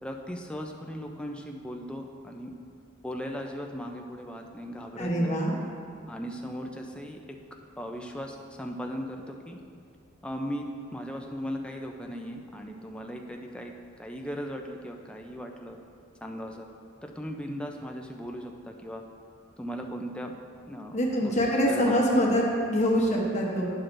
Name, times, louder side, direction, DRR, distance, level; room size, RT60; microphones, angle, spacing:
voice 1, 0.0-2.5 3.0-5.4 6.1-7.2 7.8-9.6 10.2-13.7 14.0-15.8 16.2-16.7 17.0-19.0 19.6-20.3 20.7-21.4 21.7-22.2, equal, 5° left, 2 dB, 0.4 m, -37 dB
voice 2, 5.0-5.6 20.9-23.6, equal, 35° left, -2 dB, 0.9 m, -24 dB
11.0 x 6.0 x 2.6 m, 2.4 s
head